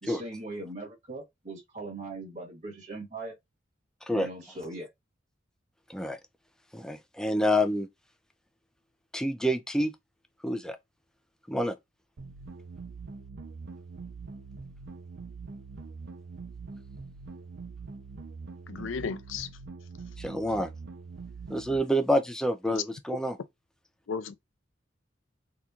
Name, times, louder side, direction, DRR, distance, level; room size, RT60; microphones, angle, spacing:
voice 1, 0.0-3.4 4.1-4.9, right 2 dB, 40° right, 1.3 m, -40 dB
voice 2, 6.7-7.9 9.1-9.9 10.4-10.8 11.5-11.8 20.2-20.7 21.5-23.4, equal, 5° left, 0.4 m, -27 dB
sound 1, 12.2-21.8, right 4 dB, 60° right, 0.5 m, -43 dB
voice 3, 18.7-19.5 22.7-22.8 24.1-24.4, left 6 dB, 80° left, 0.5 m, -34 dB
3.7 x 2.9 x 2.4 m
head